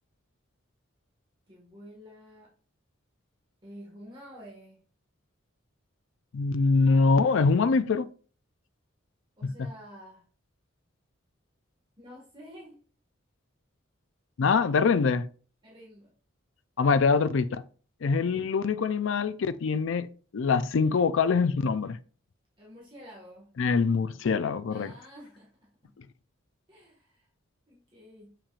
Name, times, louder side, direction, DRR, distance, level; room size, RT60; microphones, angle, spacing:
voice 1, 1.5-2.5 3.6-4.8 9.4-10.2 12.0-12.8 15.6-16.1 22.6-23.5 24.7-25.9 26.7-27.3 27.7-28.3, equal, 25° right, 1.7 m, -49 dB
voice 2, 6.3-8.1 9.4-9.5 14.4-15.3 16.8-17.6 18.0-20.1 20.3-22.0 23.6-24.9, left 4 dB, 70° left, 0.4 m, -24 dB
6.9 x 5.8 x 2.5 m
head